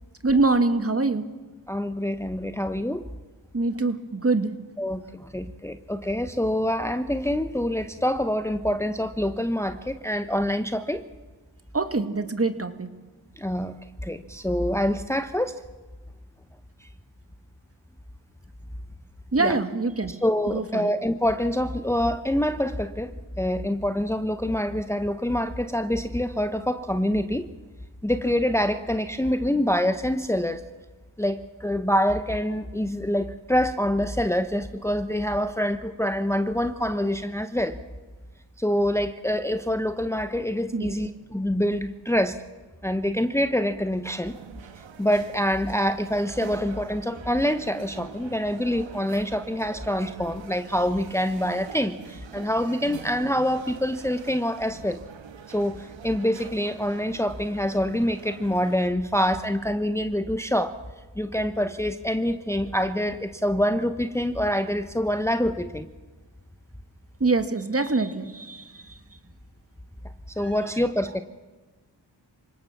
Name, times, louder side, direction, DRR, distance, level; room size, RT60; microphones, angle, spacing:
voice 1, 0.2-1.3 3.5-4.5 11.7-12.9 19.3-20.1 20.5-20.9 40.7-41.0 67.2-69.0 70.4-70.6, right 3 dB, 30° right, 9 dB, 2.2 m, -24 dB
voice 2, 1.7-3.0 4.8-11.0 13.4-13.7 14.0-15.6 19.4-19.6 20.2-27.5 28.0-30.6 31.2-37.8 38.6-42.3 42.8-44.4 45.0-55.0 55.5-60.7 61.2-65.9 70.4-71.2, equal, 5° left, 9 dB, 1.1 m, -26 dB
sound 1, 44.2-58.8, right 7 dB, 80° right, 1.7 m, -44 dB
27.0 x 18.0 x 7.3 m, 1.3 s
cardioid pair, 50°, 45 cm